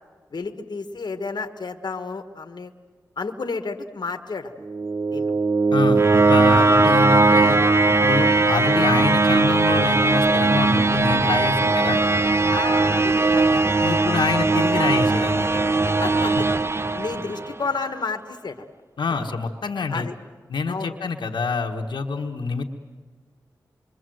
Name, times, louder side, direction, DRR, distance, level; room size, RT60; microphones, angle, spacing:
voice 1, 0.3-2.7 3.2-4.5 5.1-5.3 6.5-6.6 12.5-13.5 16.0-16.4 16.9-18.6 19.9-20.1 20.7-20.9, left 4 dB, 70° left, 6 dB, 1.4 m, -31 dB
sound 1, 4.6-17.7, right 3 dB, 35° right, 0.7 m, -19 dB
voice 2, 5.7-7.6 7.9-12.0 13.5-15.6 19.0-20.1 20.5-22.6, left 4 dB, 90° left, 2 dB, 1.4 m, -26 dB
26.5 x 23.5 x 7.8 m, 1.5 s
cardioid pair, 50°, 8 cm